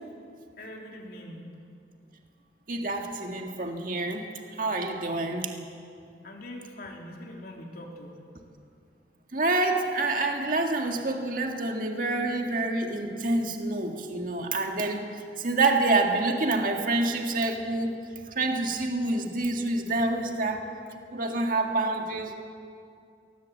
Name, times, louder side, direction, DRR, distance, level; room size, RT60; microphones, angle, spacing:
voice 1, 0.6-1.4 4.9-5.3 6.2-8.2, left 1 dB, 55° left, 0 dB, 3.8 m, -43 dB
voice 2, 2.7-4.3 4.6-5.5 9.3-15.1 15.4-18.0 18.4-20.6 21.1-22.3, right 2 dB, 50° right, 3 dB, 1.9 m, -27 dB
22.0 x 18.5 x 8.4 m, 2.4 s
head